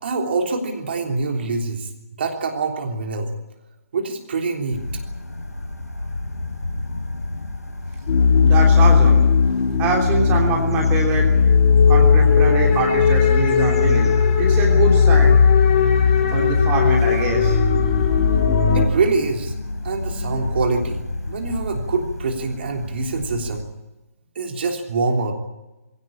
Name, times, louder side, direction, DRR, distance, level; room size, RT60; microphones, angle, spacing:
voice 1, 0.0-3.3 3.9-4.8 18.7-19.5 19.8-23.7 24.3-25.3, right 3 dB, 40° right, 2 dB, 3.4 m, -25 dB
sound 1, 4.7-23.6, left 2 dB, 80° left, 6.8 m, -32 dB
sound 2, 8.1-18.9, left 6 dB, 30° left, 2.5 m, -16 dB
voice 2, 8.4-9.2 9.8-11.3 11.9-14.1 14.4-15.4 16.3-17.6, right 3 dB, 15° right, 0 dB, 3.1 m, -24 dB
22.0 x 17.5 x 8.8 m, 1.0 s
figure-of-eight pair, 140°, 9 cm